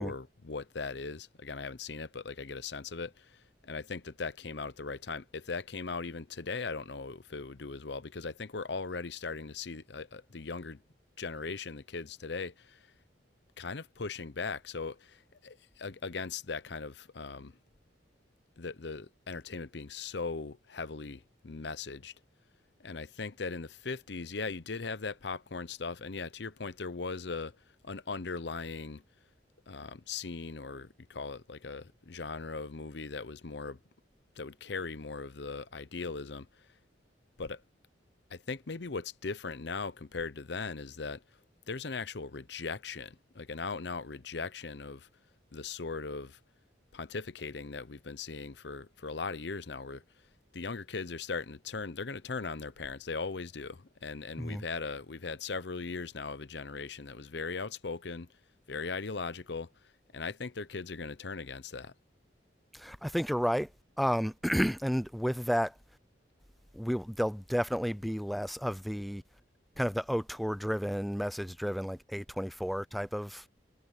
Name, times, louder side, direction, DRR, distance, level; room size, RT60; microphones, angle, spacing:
voice 1, 0.0-10.8 11.2-12.9 13.6-17.6 18.6-22.1 22.8-29.0 29.7-33.8 34.4-36.7 37.4-37.6 38.3-41.2 41.7-45.1 45.5-46.4 46.9-50.0 50.5-58.3 58.7-61.9, left 4 dB, 65° left, 0.8 m, -39 dB
voice 2, 62.7-63.7 64.0-65.7 66.7-69.2 69.8-73.4, equal, ahead, 0.4 m, -31 dB
head